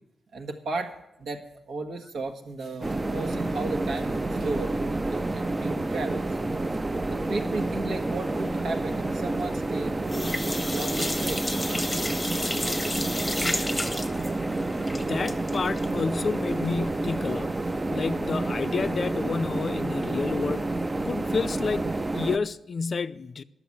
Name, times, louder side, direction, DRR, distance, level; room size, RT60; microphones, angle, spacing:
voice 1, 0.3-0.9 1.2-6.2 7.1-11.5, right 3 dB, 75° right, 1.5 m, -35 dB
sound 1, 2.8-22.4, right 2 dB, 20° right, 0.5 m, -29 dB
sound 2, 9.4-9.8 10.1-16.9 17.3-17.4 17.7-17.8, left 1 dB, 10° left, 1.0 m, -32 dB
voice 2, 14.9-17.5 17.9-20.7 21.1-21.8 22.1-23.4, left 5 dB, 45° left, 0.4 m, -30 dB
11.5 x 7.0 x 8.5 m
cardioid pair, 100°, 0 cm